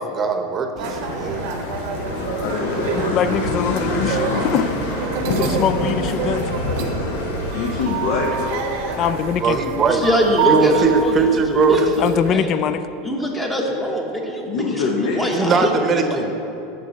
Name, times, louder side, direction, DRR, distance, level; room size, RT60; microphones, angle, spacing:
voice 1, 0.0-1.4 9.4-10.0 10.4-11.9 15.3-16.3, right 5 dB, 30° right, 6 dB, 0.8 m, -20 dB
sound 1, 0.8-9.4, left 2 dB, 85° left, 1.1 m, -26 dB
sound 2, 0.8-12.3, right 7 dB, 65° right, 0.7 m, -28 dB
voice 2, 2.4-3.5 7.5-8.6 14.5-15.5, left 4 dB, 65° left, 0 dB, 0.9 m, -25 dB
voice 3, 3.1-4.7 5.4-6.4 9.0-9.6 12.0-12.9, left 8 dB, 45° left, 12 dB, 0.4 m, -22 dB
voice 4, 9.8-12.5 13.0-15.7 16.1-16.3, equal, 15° left, 0 dB, 1.1 m, -23 dB
6.7 x 5.7 x 6.4 m, 2.8 s
supercardioid pair, 110°, 0 cm